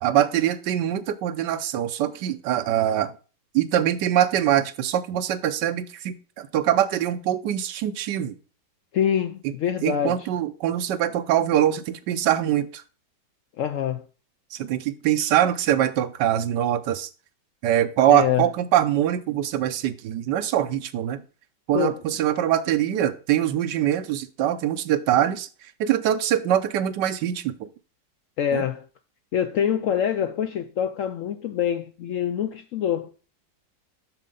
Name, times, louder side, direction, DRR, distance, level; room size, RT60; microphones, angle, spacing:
voice 1, 0.0-3.1 3.5-8.3 9.8-12.8 14.5-17.1 17.6-21.2 21.7-25.5 25.8-27.7 28.5-28.6, right 11 dB, 90° right, 1.4 m, -23 dB
voice 2, 8.9-10.3 13.6-14.0 18.1-18.5 21.7-22.0 28.4-28.9 29.3-33.1, left 9 dB, 75° left, 0.7 m, -25 dB
7.6 x 6.5 x 3.8 m
omnidirectional pair, 1.8 m